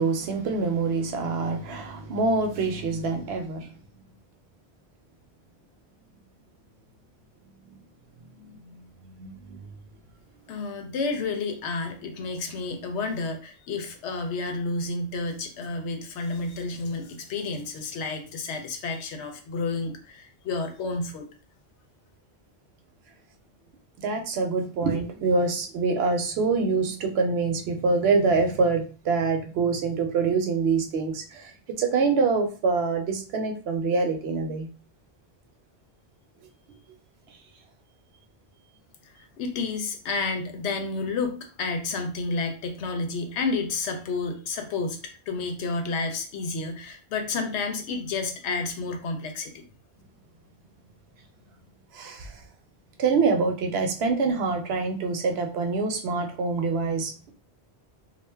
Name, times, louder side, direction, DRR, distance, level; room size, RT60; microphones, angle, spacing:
voice 1, 0.0-3.7 8.4-8.6 9.0-9.7 24.0-34.7 51.9-52.4 53.0-57.3, right 4 dB, 70° right, 4 dB, 0.8 m, -25 dB
voice 2, 10.5-21.3 39.4-45.0 45.3-49.7, left 3 dB, 90° left, 5 dB, 0.9 m, -30 dB
2.4 x 2.1 x 3.3 m, 0.38 s
omnidirectional pair, 1.1 m